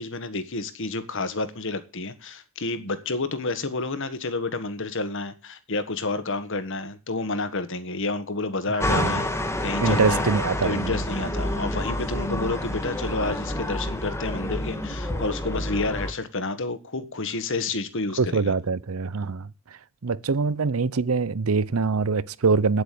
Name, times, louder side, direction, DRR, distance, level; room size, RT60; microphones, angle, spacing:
voice 1, 0.0-9.3 9.6-10.2 10.6-18.5, left 3 dB, 60° left, 1.5 m, -30 dB
voice 2, 8.7-9.2 9.8-11.0 18.2-19.5 20.0-22.8, right 4 dB, 75° right, 0.7 m, -24 dB
sound 1, 8.8-16.1, left 1 dB, 15° left, 1.8 m, -28 dB
9.3 x 8.0 x 8.4 m
head